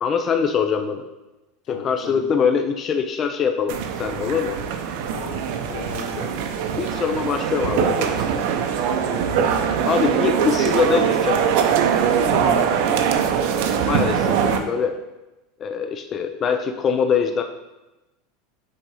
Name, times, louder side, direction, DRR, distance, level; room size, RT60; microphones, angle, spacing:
voice 1, 0.0-1.1 1.7-4.6 6.8-8.3 9.9-11.4 13.9-15.0 15.6-17.4, left 6 dB, 20° left, 6 dB, 0.3 m, -23 dB
voice 2, 1.7-2.3 5.1-6.4 9.1-9.4 12.3-12.7, left 7 dB, 85° left, 2 dB, 1.2 m, -35 dB
sound 1, 3.7-14.6, right 7 dB, 50° right, 0.6 m, -22 dB
7.4 x 3.8 x 4.8 m, 1.0 s
supercardioid pair, 175°, 0 cm